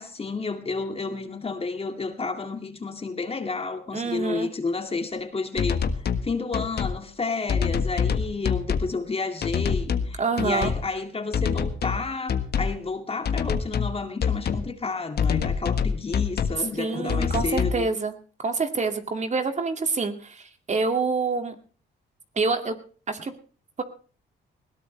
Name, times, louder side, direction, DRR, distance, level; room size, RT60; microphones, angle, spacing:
voice 1, 0.0-17.9, left 4 dB, 30° left, 2.3 m, -31 dB
voice 2, 3.9-4.5 10.2-10.7 16.8-18.1 18.4-21.6 22.4-22.7 23.1-23.3 23.8-23.9, right 4 dB, 35° right, 2.3 m, -26 dB
sound 1, 5.6-6.3 6.5-7.0 7.5-8.9 9.4-10.1 10.4-10.8 11.3-12.0 12.3-12.8 13.3-13.9 14.2-14.7 15.2-16.6 17.1-17.8, left 6 dB, 55° left, 1.5 m, -25 dB
20.5 x 17.0 x 3.3 m
cardioid pair, 90°, 20 cm